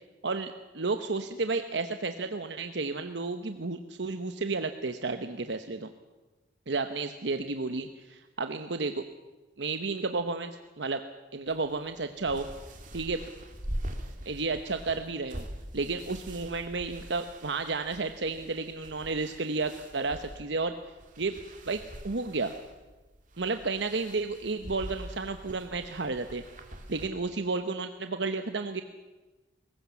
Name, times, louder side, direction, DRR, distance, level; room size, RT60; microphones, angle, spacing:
voice 1, 0.2-5.9 6.7-9.0 9.6-11.0 11.3-12.5 12.9-13.2 14.2-15.4 15.7-20.7 21.2-21.4 21.7-22.5 23.4-26.4 26.9-28.8, right 3 dB, 75° right, 8 dB, 1.0 m, -32 dB
sound 1, 11.5-27.1, right 1 dB, 45° right, 2.4 m, -43 dB
21.5 x 19.0 x 7.2 m, 1.2 s
head